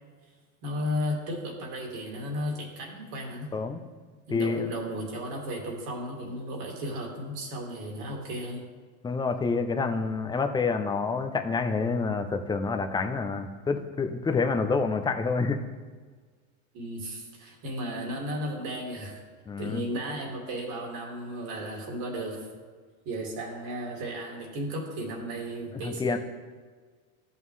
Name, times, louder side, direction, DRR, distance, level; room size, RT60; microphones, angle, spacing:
voice 1, 0.6-3.5 4.3-8.6 16.7-19.2 19.6-22.5 23.0-26.2, equal, 55° right, -1 dB, 2.6 m, -34 dB
voice 2, 3.5-3.8 4.3-4.7 9.0-15.6 19.5-19.8 25.8-26.2, left 4 dB, 10° left, 7 dB, 0.5 m, -28 dB
13.5 x 5.5 x 3.2 m, 1.5 s
supercardioid pair, 110°, 43 cm